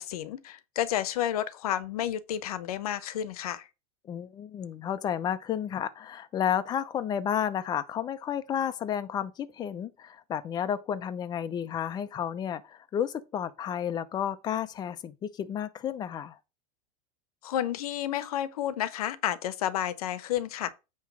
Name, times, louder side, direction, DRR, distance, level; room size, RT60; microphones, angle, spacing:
voice 1, 0.0-3.7 17.4-20.7, left 11 dB, 80° left, 0.9 m, -31 dB
voice 2, 4.1-16.4, left 9 dB, 20° left, 0.7 m, -32 dB
9.2 x 3.1 x 6.1 m
supercardioid pair, 145°, 19 cm